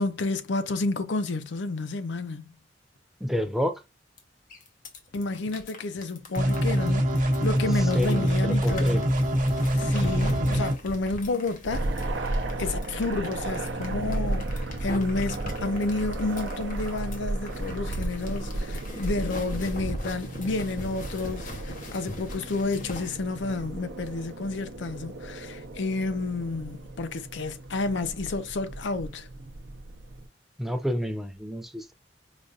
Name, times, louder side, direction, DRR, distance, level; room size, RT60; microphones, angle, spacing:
voice 1, 0.0-2.5 5.1-9.0 9.7-11.9 12.2-29.3, left 3 dB, 85° left, 0.5 m, -30 dB
voice 2, 3.2-3.8 7.9-9.0 30.6-31.9, equal, ahead, 0.5 m, -29 dB
sound 1, 4.2-4.3 4.5-23.2, equal, 50° left, 0.9 m, -38 dB
sound 2, 6.4-10.7, equal, 45° right, 0.8 m, -24 dB
sound 3, 11.7-30.3, right 1 dB, 85° right, 0.6 m, -34 dB
4.9 x 2.6 x 2.3 m
head